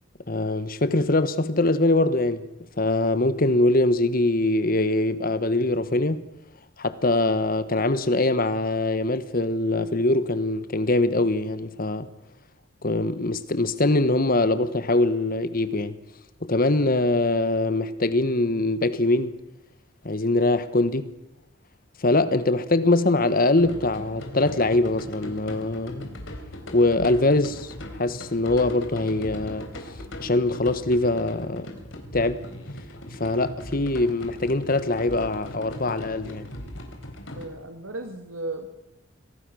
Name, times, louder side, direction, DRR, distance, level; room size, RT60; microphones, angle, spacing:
voice 1, 0.3-2.5 2.8-6.2 6.8-12.1 12.8-16.0 16.4-19.3 20.0-21.1 22.0-26.1 26.7-29.7 30.2-31.7 32.1-32.4 33.1-36.5, left 2 dB, 45° left, 1.2 m, -23 dB
sound 1, 23.6-37.4, left 1 dB, 70° left, 3.9 m, -39 dB
voice 2, 37.4-38.7, right 2 dB, 85° right, 2.3 m, -35 dB
25.0 x 18.0 x 6.3 m
head